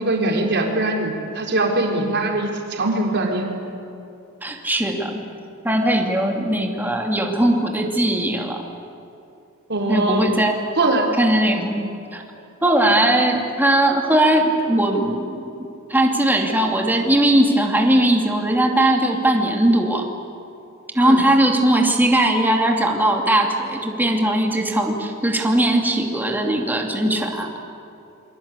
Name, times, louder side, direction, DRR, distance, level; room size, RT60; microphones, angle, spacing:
voice 1, 0.0-3.5 9.7-10.3 10.8-11.2 21.0-21.2, right 2 dB, 55° right, 1 dB, 4.1 m, -21 dB
voice 2, 4.4-5.2 5.6-8.6 9.9-10.6 11.2-12.2 12.6-15.5 15.9-20.0 20.9-27.6, right 1 dB, 10° right, 1 dB, 2.8 m, -19 dB
28.0 x 24.0 x 8.4 m, 2.6 s
head